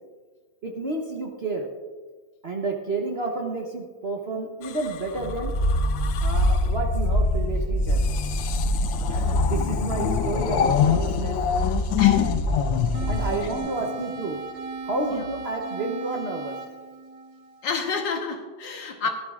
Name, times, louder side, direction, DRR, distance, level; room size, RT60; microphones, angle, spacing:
voice 1, 0.6-1.7 2.4-5.5 6.2-8.1 9.1-11.4 13.1-14.4 14.8-16.5, right 3 dB, 40° right, 1 dB, 1.0 m, -30 dB
sound 1, 4.6-6.7 7.8-14.2 15.1-15.4, left 9 dB, 90° left, 1.4 m, -27 dB
sound 2, 5.1-13.6, equal, 35° left, 1.1 m, -25 dB
voice 2, 12.0-12.4 13.4-13.5 15.1-15.2 17.6-19.1, left 5 dB, 75° left, 3 dB, 1.9 m, -30 dB
sound 3, 12.9-18.0, right 3 dB, 75° right, 1.7 m, -37 dB
16.5 x 12.0 x 2.5 m, 1.4 s
omnidirectional pair, 2.0 m